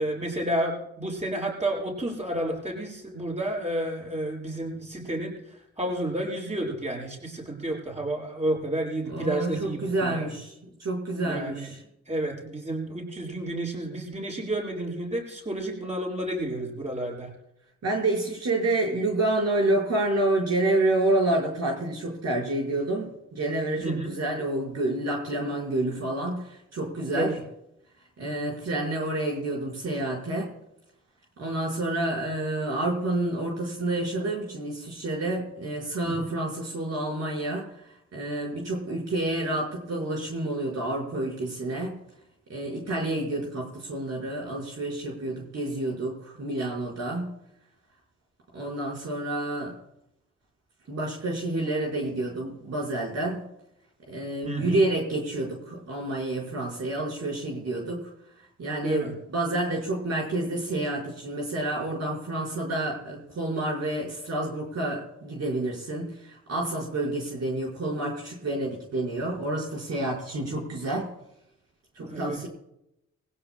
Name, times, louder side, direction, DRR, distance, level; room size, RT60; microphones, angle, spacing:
voice 1, 0.0-10.3 11.3-11.7 12.1-17.3 23.8-24.1 27.1-27.4 36.0-36.3 54.4-54.8 58.8-59.1 72.0-72.5, right 1 dB, 25° right, -1 dB, 6.7 m, -31 dB
voice 2, 9.1-10.5 10.8-11.8 17.8-27.3 28.2-30.5 31.4-37.7 38.1-41.9 42.5-47.3 48.5-49.8 50.9-53.4 54.1-58.1 58.6-71.1 72.0-72.5, right 2 dB, 60° right, -2 dB, 5.3 m, -29 dB
21.5 x 16.5 x 2.3 m, 0.82 s
cardioid pair, 70°, 29 cm